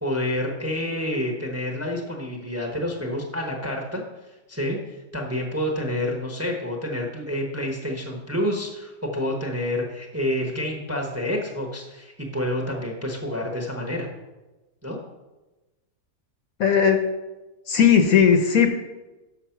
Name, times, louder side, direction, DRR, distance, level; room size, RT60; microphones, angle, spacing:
voice 1, 0.0-4.0 4.5-4.8 5.1-14.1 14.8-15.0, left 1 dB, 10° right, 1 dB, 0.7 m, -28 dB
voice 2, 16.6-17.0 17.7-18.7, left 7 dB, 65° left, 5 dB, 1.0 m, -17 dB
6.4 x 5.9 x 5.8 m, 1.1 s
omnidirectional pair, 1.8 m